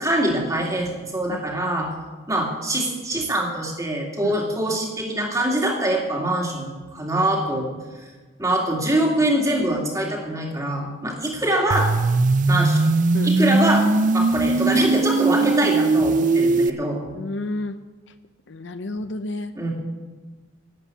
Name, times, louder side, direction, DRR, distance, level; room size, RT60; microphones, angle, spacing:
voice 1, 0.0-1.9 2.3-7.7 8.0-8.1 8.4-11.9 12.5-12.9 13.2-13.9 14.1-17.0 19.6-19.7, right 1 dB, 15° right, -1 dB, 2.4 m, -24 dB
sound 1, 11.7-16.7, right 3 dB, 40° right, 0.4 m, -19 dB
voice 2, 13.1-13.5 15.4-15.7 17.1-17.8 18.5-19.5, left 2 dB, 60° left, 10 dB, 0.6 m, -31 dB
12.0 x 8.3 x 9.5 m, 1.3 s
head